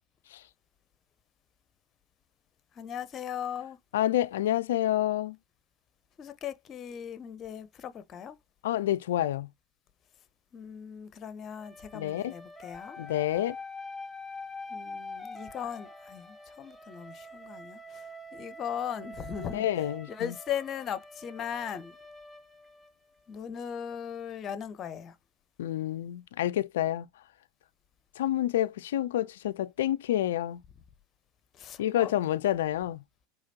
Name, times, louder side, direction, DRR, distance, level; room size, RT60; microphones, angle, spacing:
voice 1, 2.7-3.8 6.2-8.4 10.5-13.0 14.7-22.0 23.3-25.2 31.5-32.1, left 8 dB, 35° left, 0.8 m, -38 dB
voice 2, 3.9-5.4 8.6-9.5 11.9-12.3 13.0-13.6 19.5-20.3 25.6-27.1 28.2-30.6 31.8-33.0, left 13 dB, 70° left, 0.3 m, -28 dB
sound 1, 11.6-23.4, left 2 dB, 5° left, 1.0 m, -45 dB
5.0 x 3.4 x 2.8 m
hypercardioid pair, 85°, 0 cm